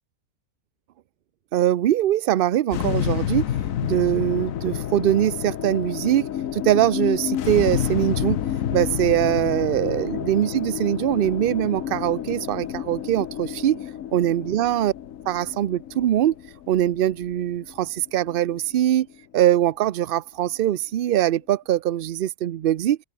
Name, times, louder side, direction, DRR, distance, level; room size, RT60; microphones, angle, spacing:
voice 1, 1.5-3.5 3.8-8.4 8.7-13.8 14.1-14.9 15.3-16.3 16.7-19.1 19.3-23.0, right 12 dB, 60° right, 0.6 m, -22 dB
sound 1, 2.7-19.1, left 10 dB, 75° left, 1.3 m, -29 dB
open air
omnidirectional pair, 1.4 m